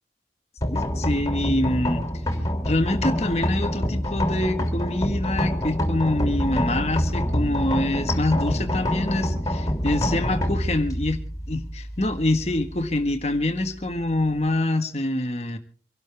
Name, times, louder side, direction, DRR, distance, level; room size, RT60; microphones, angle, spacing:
sound 1, 0.6-14.5, left 1 dB, 20° left, 3.2 m, -27 dB
voice 1, 0.7-2.1 2.7-11.2 11.5-15.6, left 1 dB, 35° left, 7 dB, 1.6 m, -25 dB
25.5 x 12.0 x 3.5 m, 0.41 s
head